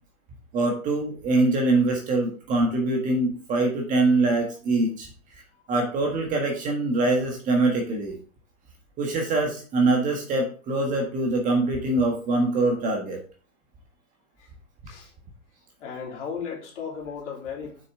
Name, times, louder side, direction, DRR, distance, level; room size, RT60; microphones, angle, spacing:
voice 1, 0.5-5.1 5.7-8.2 9.0-13.2, right 2 dB, 20° right, 1.5 m, -23 dB
voice 2, 15.8-17.9, left 6 dB, 55° left, 3.4 m, -35 dB
7.1 x 6.2 x 3.7 m
hypercardioid pair, 135°, 43 cm